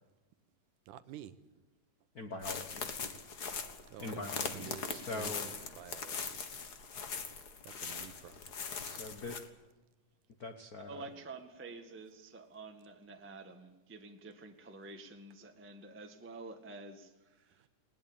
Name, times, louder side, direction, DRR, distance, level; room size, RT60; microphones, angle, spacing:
voice 1, 0.9-1.4 3.9-6.7 7.6-8.4, right 11 dB, 80° right, 12 dB, 2.4 m, -50 dB
voice 2, 2.1-2.9 4.0-5.5 8.8-9.4 10.4-11.0, left 2 dB, 90° left, 6 dB, 0.8 m, -43 dB
sound 1, 2.4-9.5, left 5 dB, 45° left, 1.3 m, -41 dB
voice 3, 10.8-17.7, right 3 dB, 15° right, 5 dB, 0.4 m, -49 dB
20.0 x 18.5 x 8.8 m, 1.1 s
omnidirectional pair, 3.8 m